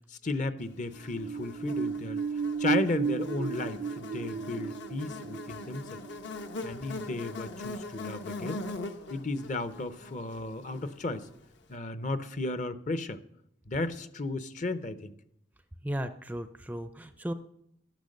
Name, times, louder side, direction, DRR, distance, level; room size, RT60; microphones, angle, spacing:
voice 1, 0.1-2.2 2.6-6.0 6.6-8.7 9.1-11.3 11.7-13.2 13.7-15.1, left 2 dB, 40° left, 12 dB, 0.7 m, -34 dB
Buzz, 0.9-11.4, left 2 dB, 70° left, 1.0 m, -42 dB
sound 1, 1.0-7.3 7.7-7.8, right 5 dB, 75° right, 0.4 m, -34 dB
voice 2, 15.8-17.3, equal, 10° right, 10 dB, 0.4 m, -35 dB
12.0 x 10.5 x 6.5 m, 0.75 s
head